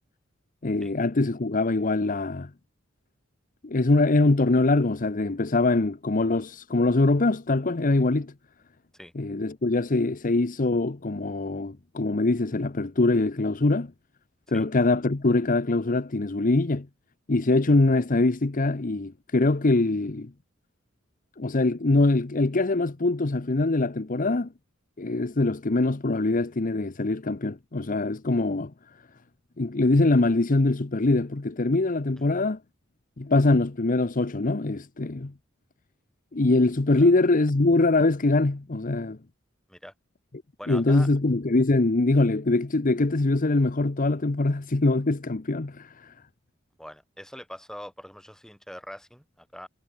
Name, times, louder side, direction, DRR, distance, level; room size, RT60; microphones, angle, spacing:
voice 1, 0.6-2.5 3.6-8.3 9.1-13.9 14.5-16.9 17.3-20.3 21.4-24.5 25.0-28.7 29.6-32.6 33.2-35.3 36.3-39.2 40.7-46.1, left 2 dB, 45° left, 0.9 m, -23 dB
voice 2, 40.6-41.1 46.8-49.7, equal, 5° left, 6.4 m, -43 dB
head